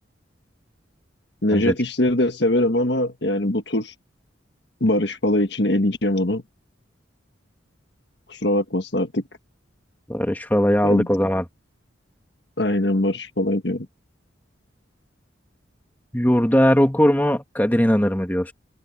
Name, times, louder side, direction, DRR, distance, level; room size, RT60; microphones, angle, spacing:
voice 1, 1.4-3.9 4.8-6.4 8.3-9.2 10.8-11.1 12.6-13.9, left 1 dB, 60° left, 1.6 m, -22 dB
voice 2, 10.1-11.4 16.1-18.5, equal, 10° left, 1.6 m, -19 dB
open air
head